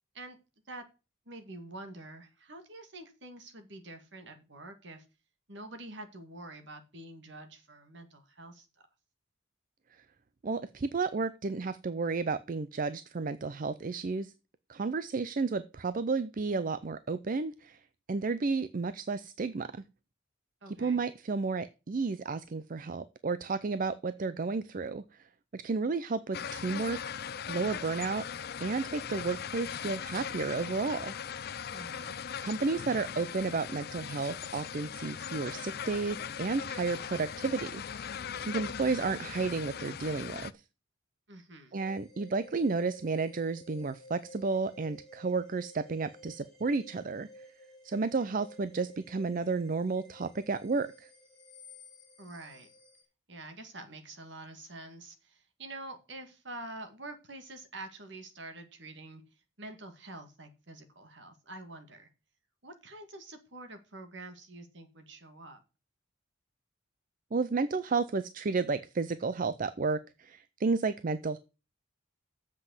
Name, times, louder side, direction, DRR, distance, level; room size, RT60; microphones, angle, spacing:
voice 1, 1.3-5.0 5.5-8.7 20.6-21.0 31.7-32.2 41.3-41.8 52.2-52.7 53.3-59.2 59.6-62.1 62.6-65.6, right 2 dB, 60° right, 6 dB, 2.0 m, -47 dB
voice 2, 10.4-14.3 14.7-17.8 18.1-19.7 20.8-25.0 25.5-27.2 27.5-28.2 28.6-31.1 32.4-40.5 41.7-47.3 47.8-50.9 67.3-71.4, right 4 dB, 40° right, 14 dB, 0.5 m, -32 dB
sound 1, 26.3-40.5, left 7 dB, 50° left, 0.4 m, -39 dB
sound 2, 41.8-53.0, equal, ahead, 2.6 m, -54 dB
7.6 x 6.1 x 7.8 m, 0.31 s
head